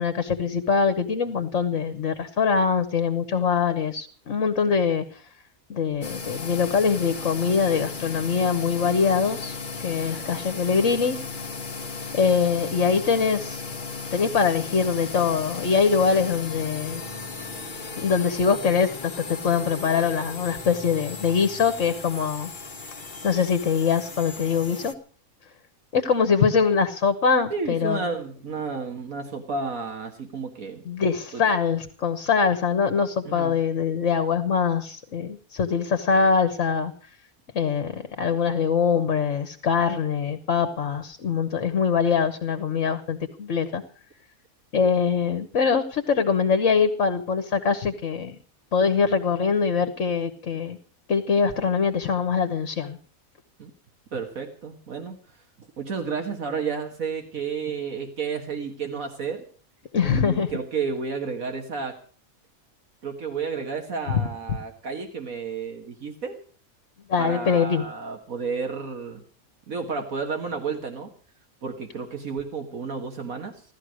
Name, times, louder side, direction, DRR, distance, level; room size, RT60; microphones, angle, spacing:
voice 1, 0.0-5.0 5.7-11.2 12.1-13.6 14.1-17.0 18.0-22.5 23.2-24.9 25.9-28.0 30.9-36.9 37.5-43.8 44.7-48.3 48.7-50.8 51.1-53.0 59.9-60.5 67.1-67.8, left 6 dB, 60° left, 10 dB, 1.5 m, -23 dB
sound 1, 6.0-24.9, left 4 dB, 35° left, 1.5 m, -36 dB
voice 2, 27.5-30.8 31.3-31.4 33.2-33.6 53.6-53.7 54.1-55.2 55.8-59.4 60.1-62.0 63.0-66.4 67.2-69.2 69.7-71.1 71.6-73.6, right 5 dB, 70° right, 4 dB, 2.0 m, -31 dB
16.5 x 12.5 x 6.3 m, 0.43 s
omnidirectional pair, 1.5 m